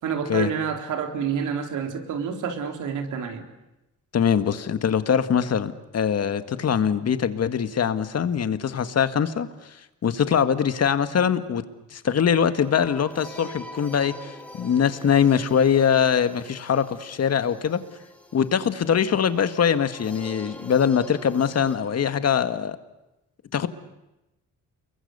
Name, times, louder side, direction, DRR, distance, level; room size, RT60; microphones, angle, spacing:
voice 1, 0.0-3.4, right 7 dB, 80° right, 4 dB, 4.0 m, -28 dB
voice 2, 4.1-9.8 10.0-11.6 11.9-17.8 18.3-22.8 23.5-23.7, left 7 dB, 55° left, 10 dB, 1.9 m, -22 dB
sound 1, 12.5-21.8, left 1 dB, 5° left, 4.4 m, -44 dB
29.0 x 22.5 x 8.2 m, 0.96 s
cardioid pair, 90°, 30 cm